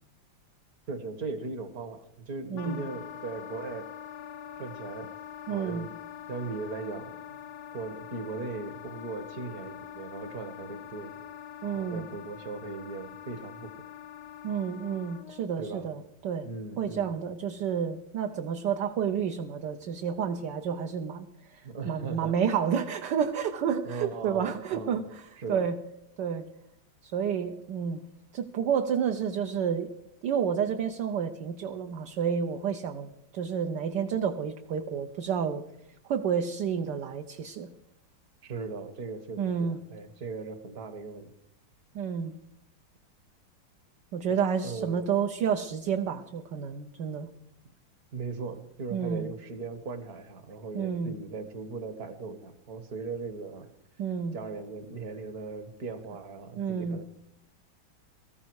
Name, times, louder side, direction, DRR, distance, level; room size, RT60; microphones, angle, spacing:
voice 1, 0.9-3.9 4.6-5.1 5.5-5.9 6.3-7.4 7.7-11.1 11.8-13.7 15.6-15.9 16.4-17.1 21.6-22.3 23.9-25.0 25.4-25.7 38.4-41.3 44.6-45.1 48.1-53.7 54.3-57.0, right 4 dB, 50° right, 10 dB, 1.9 m, -38 dB
voice 2, 2.5-2.8 5.5-5.9 11.6-12.1 14.4-16.5 16.8-25.8 26.2-26.5 27.0-28.0 28.3-29.9 30.2-35.6 36.0-37.7 39.4-39.8 41.9-42.3 44.1-47.3 48.9-49.3 50.7-51.2 54.0-54.4 56.6-57.0, right 7 dB, 65° right, 5 dB, 1.4 m, -30 dB
Wind instrument woodwind instrument, 2.6-15.5, left 10 dB, 85° left, 1.6 m, -44 dB
18.5 x 14.0 x 4.7 m, 0.77 s
omnidirectional pair, 2.2 m